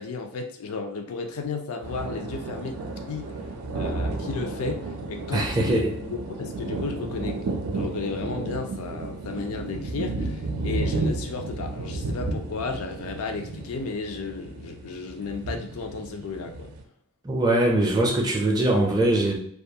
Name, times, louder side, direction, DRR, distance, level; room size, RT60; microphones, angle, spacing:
voice 1, 0.0-2.8 3.1-3.3 3.7-7.4 7.7-16.7, left 4 dB, 75° left, 5 dB, 0.4 m, -33 dB
sound 1, 1.8-16.8, right 3 dB, 80° right, 0.4 m, -32 dB
voice 2, 5.3-5.9 17.2-19.4, right 1 dB, 20° right, 0 dB, 0.4 m, -22 dB
2.3 x 2.3 x 2.7 m, 0.65 s
head